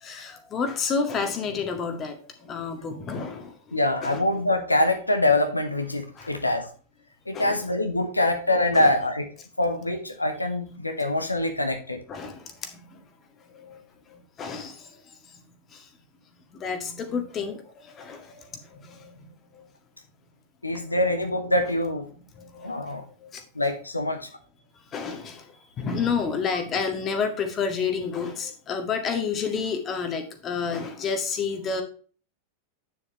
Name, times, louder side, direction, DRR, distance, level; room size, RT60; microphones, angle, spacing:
voice 1, 0.0-4.2 6.2-6.3 7.3-7.7 8.7-8.9 12.1-13.1 13.5-13.8 14.1-15.0 15.7-15.9 16.5-19.7 22.4-23.4 24.9-31.8, left 5 dB, 25° left, 6 dB, 1.9 m, -30 dB
voice 2, 3.7-6.7 7.3-9.3 9.6-12.0 20.6-22.1 22.6-23.0 23.5-24.3, left 1 dB, 85° left, 6 dB, 1.2 m, -24 dB
9.9 x 6.8 x 3.2 m, 0.39 s
figure-of-eight pair, 90°, 0 cm